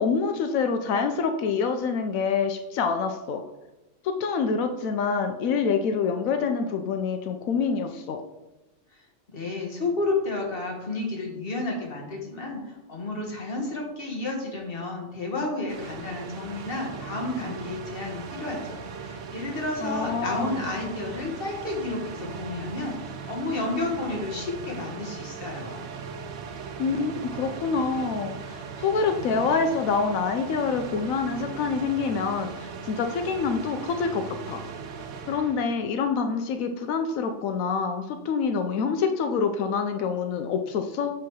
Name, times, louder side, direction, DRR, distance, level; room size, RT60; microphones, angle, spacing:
voice 1, 0.0-3.4 4.0-8.2 19.8-20.6 26.8-34.6 35.3-41.1, left 5 dB, 90° left, 6 dB, 1.1 m, -26 dB
voice 2, 9.3-25.9, left 2 dB, 45° left, 0 dB, 1.7 m, -31 dB
sound 1, 15.7-35.6, right 5 dB, 90° right, 1.1 m, -38 dB
7.7 x 3.5 x 6.3 m, 1.0 s
omnidirectional pair, 1.4 m